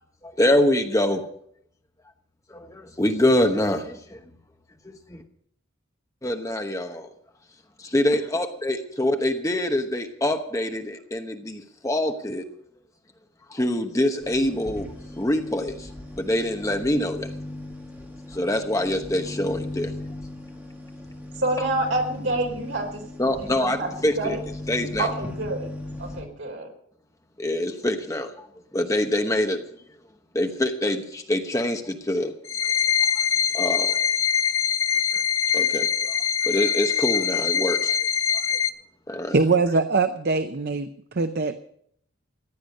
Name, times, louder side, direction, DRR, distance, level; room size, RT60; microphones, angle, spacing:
voice 1, 0.2-1.3 2.5-4.2 4.8-5.2 6.2-7.1 7.8-12.5 13.5-14.9 15.2-15.9 16.2-17.3 18.3-19.9 21.6-21.7 23.2-24.4 24.7-25.1 27.4-28.5 28.7-29.6 30.3-32.3 33.1-33.2 33.5-34.1 35.1-35.2 35.5-36.2 36.4-38.0 38.3-38.6 39.1-39.4, left 1 dB, 15° left, 5 dB, 1.0 m, -25 dB
sound 1, 14.2-26.2, left 1 dB, 10° right, 2.5 m, -37 dB
voice 2, 21.4-23.0 23.4-23.9 24.2-24.4 25.0-25.7 26.0-26.7, right 2 dB, 65° right, 2 dB, 4.1 m, -27 dB
sound 2, 32.4-38.7, left 7 dB, 75° left, 0.9 m, -23 dB
voice 3, 39.3-41.5, right 3 dB, 50° right, 9 dB, 0.6 m, -22 dB
15.0 x 10.5 x 6.5 m, 0.68 s
head